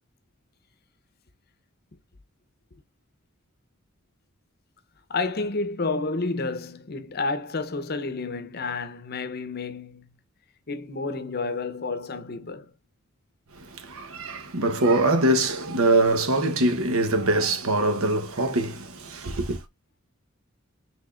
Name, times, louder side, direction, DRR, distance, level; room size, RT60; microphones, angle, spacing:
voice 1, 5.1-10.1 10.7-12.7, left 3 dB, 45° left, 0.7 m, -30 dB
voice 2, 13.5-19.6, right 2 dB, 80° right, 1.0 m, -23 dB
6.1 x 3.5 x 2.4 m
head